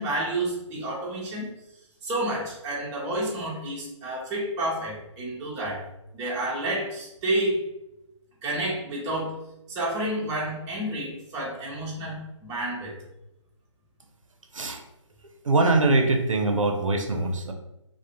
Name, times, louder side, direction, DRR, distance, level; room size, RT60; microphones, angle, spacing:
voice 1, 0.0-1.5 2.0-5.8 6.1-7.6 8.4-9.3 9.7-12.9, right 1 dB, 15° right, -4 dB, 0.5 m, -30 dB
voice 2, 15.4-17.5, right 2 dB, 85° right, 4 dB, 0.5 m, -22 dB
2.3 x 2.0 x 2.8 m, 0.90 s
figure-of-eight pair, 140°, 16 cm